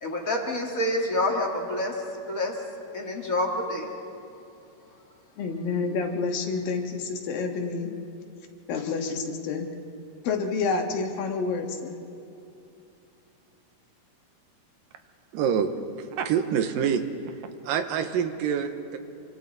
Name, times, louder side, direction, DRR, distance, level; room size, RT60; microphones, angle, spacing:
voice 1, 0.0-2.5 2.9-3.9, left 1 dB, 30° left, 0 dB, 1.8 m, -28 dB
voice 2, 5.4-8.0 8.7-9.7 10.2-12.0, left 4 dB, 80° left, 3 dB, 3.4 m, -28 dB
voice 3, 15.3-19.0, right 7 dB, 80° right, 8 dB, 2.7 m, -27 dB
27.5 x 25.0 x 4.2 m, 2.7 s
omnidirectional pair, 4.0 m